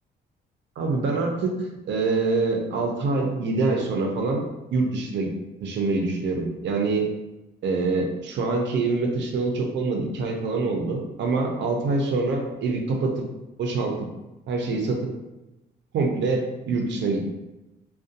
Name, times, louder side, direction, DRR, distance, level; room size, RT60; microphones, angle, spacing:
voice 1, 0.8-1.6 1.9-4.4 4.7-5.3 5.6-7.1 7.6-13.2 13.6-14.1 14.5-15.1 15.9-17.3, right 3 dB, 65° right, 1 dB, 0.6 m, -25 dB
2.5 x 2.2 x 2.5 m, 0.99 s
cardioid pair, 90°, 20 cm